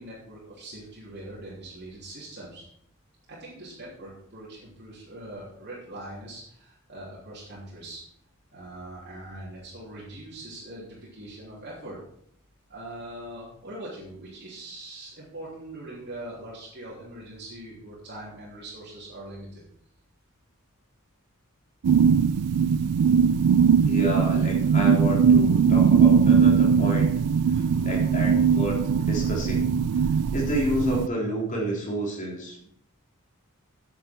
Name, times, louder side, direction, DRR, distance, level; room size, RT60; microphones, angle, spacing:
voice 1, 0.0-2.6 3.3-8.0 8.5-12.0 12.7-19.6 27.5-27.9 30.2-30.4, right 1 dB, 50° right, -7 dB, 3.3 m, -42 dB
sound 1, 21.8-31.1, right 6 dB, 85° right, 0.4 m, -20 dB
voice 2, 23.9-27.1 27.5-29.7 29.9-30.0 30.3-32.7, equal, 35° left, -2 dB, 3.4 m, -30 dB
9.7 x 9.1 x 4.6 m, 0.69 s
head